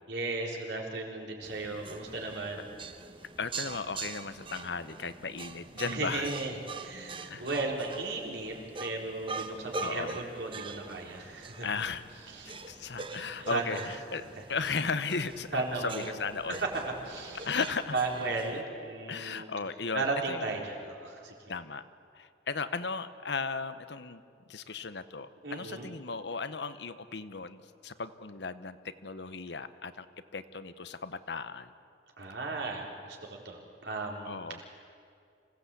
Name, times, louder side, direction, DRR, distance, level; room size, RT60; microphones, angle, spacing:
voice 1, 0.1-2.7 5.8-8.5 8.8-11.7 12.3-12.7 13.4-13.8 15.5-16.1 17.0-17.5 17.9-19.5 19.9-21.3 25.4-25.9 32.2-33.2 33.4-34.6, right 3 dB, 80° right, 0 dB, 3.9 m, -35 dB
sound 1, 1.4-18.6, right 3 dB, 30° right, 0.9 m, -43 dB
voice 2, 3.4-6.3 7.3-7.5 9.8-10.2 11.6-12.0 12.7-14.2 14.5-16.6 17.4-17.9 19.1-20.6 21.5-21.9 22.1-24.2 24.5-28.8 29.0-30.1 30.3-31.7 34.2-34.6, left 4 dB, 75° left, 12 dB, 0.9 m, -36 dB
26.0 x 17.0 x 8.4 m, 2.4 s
head